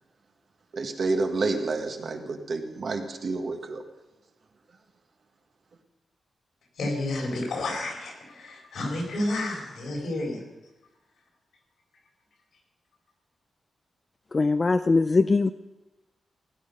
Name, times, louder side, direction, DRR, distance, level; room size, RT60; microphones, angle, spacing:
voice 1, 0.7-3.8, right 3 dB, 55° right, 4 dB, 1.6 m, -29 dB
voice 2, 6.8-10.4, left 2 dB, 85° left, 0 dB, 4.4 m, -30 dB
voice 3, 14.3-15.5, left 3 dB, 30° left, 10 dB, 0.4 m, -21 dB
16.5 x 10.5 x 5.4 m, 1.0 s
wide cardioid pair, 135°, 0 cm